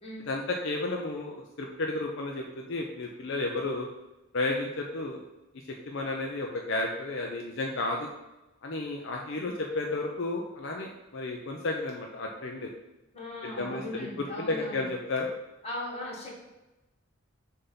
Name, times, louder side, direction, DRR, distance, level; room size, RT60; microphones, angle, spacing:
voice 1, 0.3-3.9 4.3-5.2 5.9-8.1 8.6-12.7 13.4-15.3, left 2 dB, 60° left, 1 dB, 0.6 m, -32 dB
voice 2, 13.1-14.9 15.6-16.4, left 1 dB, 30° left, -3 dB, 1.7 m, -38 dB
6.7 x 2.8 x 5.5 m, 1.0 s
head